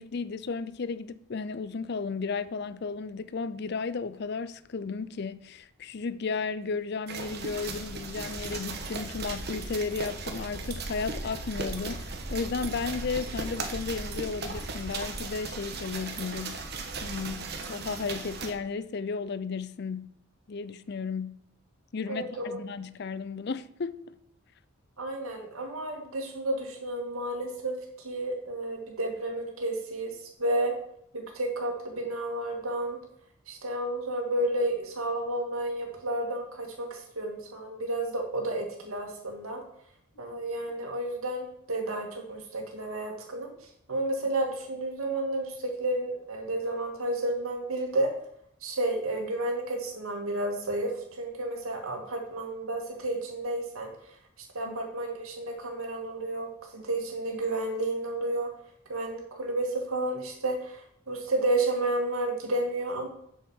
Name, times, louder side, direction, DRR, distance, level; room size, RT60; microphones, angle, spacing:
voice 1, 0.0-16.6 17.0-20.2 20.5-21.5 21.9-24.0 54.6-54.8, left 4 dB, 50° left, 0.5 m, -34 dB
sound 1, 7.1-18.5, right 3 dB, 50° right, 1.3 m, -37 dB
voice 2, 22.1-22.6 25.0-27.8 28.0-30.7 31.1-33.0 33.5-39.6 40.2-43.5 43.9-48.1 48.6-50.9 51.2-53.9 54.5-58.5 58.9-63.1, right 1 dB, 85° right, 2.1 m, -31 dB
7.9 x 6.4 x 7.1 m
head